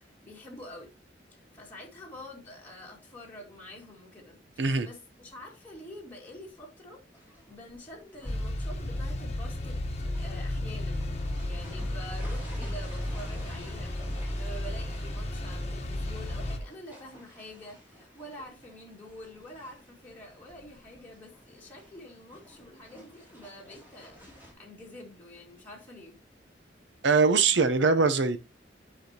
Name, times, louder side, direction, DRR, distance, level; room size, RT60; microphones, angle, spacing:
voice 1, 0.2-0.9 1.3-7.0 7.5-11.1 11.4-13.9 14.3-24.2 24.6-26.2 27.8-27.9, left 1 dB, 10° left, 2.1 m, -47 dB
sound 1, 7.1-24.5, equal, 10° right, 2.7 m, -53 dB
sound 2, 8.2-16.6, left 1 dB, 40° left, 1.2 m, -33 dB
voice 2, 27.0-28.4, right 4 dB, 85° right, 0.8 m, -22 dB
10.5 x 4.9 x 2.9 m
head